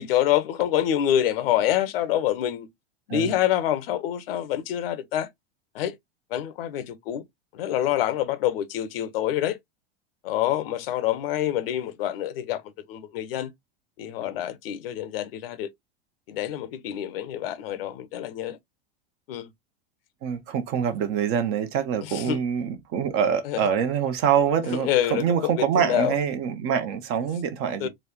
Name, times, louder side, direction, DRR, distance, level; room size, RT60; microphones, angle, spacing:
voice 1, 0.0-2.7 3.1-5.3 5.7-5.9 6.3-7.2 7.5-9.6 10.2-12.6 12.9-13.5 14.0-15.7 16.3-18.6 19.3-19.5 22.1-22.4 23.4-23.6 24.8-26.2 27.8-27.9, left 11 dB, 60° left, 0.8 m, -26 dB
voice 2, 20.2-27.9, right 8 dB, 45° right, 0.9 m, -25 dB
4.1 x 2.4 x 2.8 m
figure-of-eight pair, 90°, 33 cm